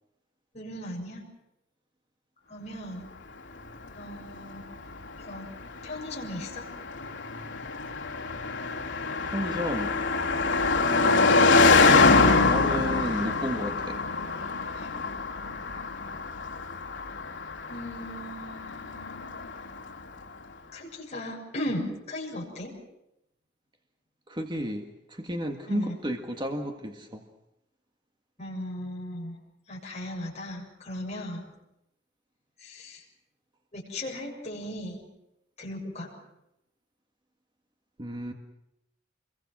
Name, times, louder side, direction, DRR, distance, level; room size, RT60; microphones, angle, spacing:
voice 1, 0.5-1.2 2.5-3.1 3.9-4.6 5.2-5.5 5.8-6.7 11.0-11.3 14.7-14.9 17.7-19.4 20.7-22.7 25.7-25.9 28.4-29.4 29.7-31.5 32.6-33.0 33.7-35.1 35.6-36.1, left 1 dB, 35° left, -2 dB, 7.0 m, -37 dB
Car passing by, 3.6-20.0, left 3 dB, 70° left, 3.4 m, -25 dB
voice 2, 9.2-9.9 10.8-11.9 12.5-14.0 24.3-27.2 38.0-38.3, equal, 25° right, 3 dB, 1.8 m, -33 dB
27.5 x 23.0 x 6.3 m, 0.85 s
head